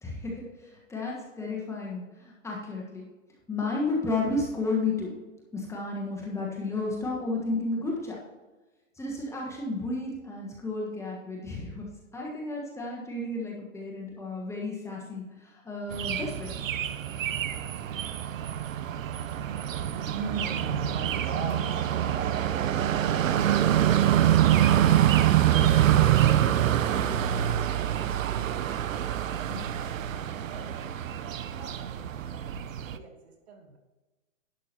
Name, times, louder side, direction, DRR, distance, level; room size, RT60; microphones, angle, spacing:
voice 1, 0.0-3.1 3.5-5.2 5.5-8.2 9.0-11.9 12.1-16.6 29.5-29.6, left 3 dB, 5° left, -2 dB, 1.4 m, -32 dB
sound 1, 15.9-33.0, right 11 dB, 80° right, 0.8 m, -25 dB
voice 2, 20.1-23.6 26.9-27.6 30.1-33.8, right 3 dB, 55° right, 2 dB, 2.2 m, -43 dB
11.0 x 6.1 x 4.4 m, 1.2 s
hypercardioid pair, 150°, 39 cm